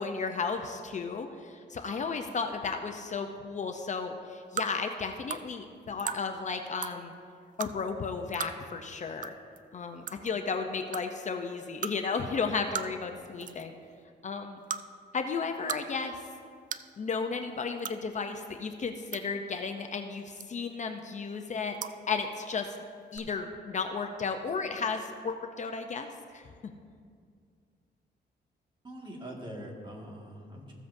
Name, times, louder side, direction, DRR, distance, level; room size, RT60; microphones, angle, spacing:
voice 1, 0.0-7.1 7.6-9.3 9.7-13.8 14.2-14.6 15.1-16.1 17.0-21.8 22.1-22.8 23.1-26.4, left 5 dB, 40° left, 5 dB, 0.6 m, -34 dB
sound 1, 4.6-4.7 5.3-5.4 6.0-6.2 6.8-6.9 7.6-7.7 8.3-8.5 9.2-9.3 9.6-9.7 10.1-10.3 10.9-11.0 11.8-11.9 12.7-13.0 13.4-13.7 14.6-14.8 15.4-15.8 16.1-16.2 16.7-16.9 17.8-18.0 18.8-19.2 20.4-20.7 21.7-21.9 23.1-23.2, right 8 dB, 45° right, 0.4 m, -35 dB
voice 2, 28.8-30.7, equal, 25° right, -1 dB, 1.8 m, -43 dB
15.0 x 7.4 x 2.6 m, 2.2 s
cardioid pair, 100°, 18 cm